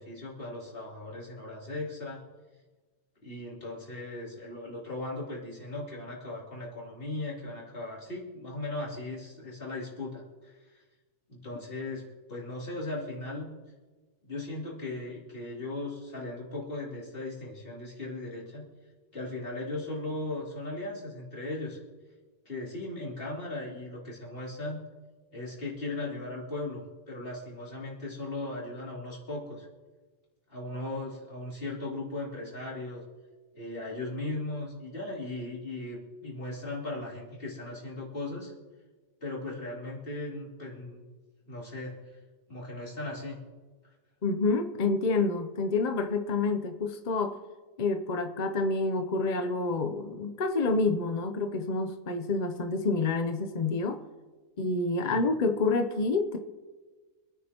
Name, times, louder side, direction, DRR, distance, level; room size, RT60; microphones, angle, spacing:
voice 1, 0.0-2.2 3.2-10.8 11.3-13.5 14.3-18.7 19.1-21.8 22.4-24.8 25.3-29.7 30.5-33.0 33.6-38.5 39.2-41.0 41.5-42.0 42.5-43.4 55.0-55.2, left 2 dB, 35° left, -5 dB, 3.4 m, -37 dB
voice 2, 44.2-47.4 47.8-54.0 54.6-56.4, left 3 dB, 50° left, 6 dB, 0.5 m, -28 dB
26.5 x 9.6 x 3.0 m, 1.3 s
omnidirectional pair, 1.7 m